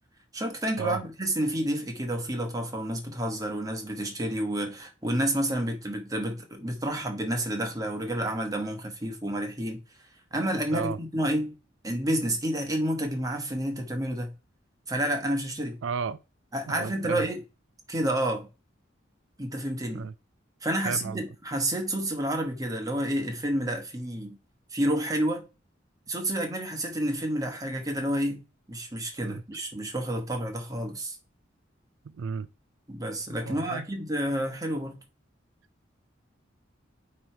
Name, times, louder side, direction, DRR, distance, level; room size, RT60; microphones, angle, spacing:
voice 1, 0.3-9.8 10.3-11.5 11.8-14.3 14.9-15.8 16.5-17.4 17.9-18.5 19.4-20.1 20.6-24.4 24.7-25.4 26.1-28.4 28.7-31.2 32.9-34.9, right 1 dB, 20° right, 1.3 m, -29 dB
voice 2, 15.8-16.2 16.7-17.3 19.9-20.1 20.8-21.2 29.2-29.4 32.0-32.5 33.5-33.9, right 6 dB, 90° right, 0.4 m, -33 dB
9.2 x 3.2 x 4.5 m
head